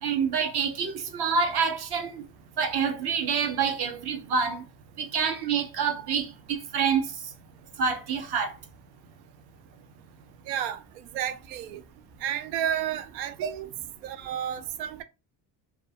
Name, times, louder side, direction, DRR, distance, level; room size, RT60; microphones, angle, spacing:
voice 1, 0.0-2.2 2.6-4.6 5.0-7.1 7.8-8.5, right 6 dB, 50° right, 1.0 m, -27 dB
voice 2, 10.5-10.8 11.1-11.8 12.2-13.7 14.0-15.0, right 9 dB, 85° right, 0.6 m, -31 dB
2.4 x 2.3 x 2.8 m
hypercardioid pair, 60°, 49 cm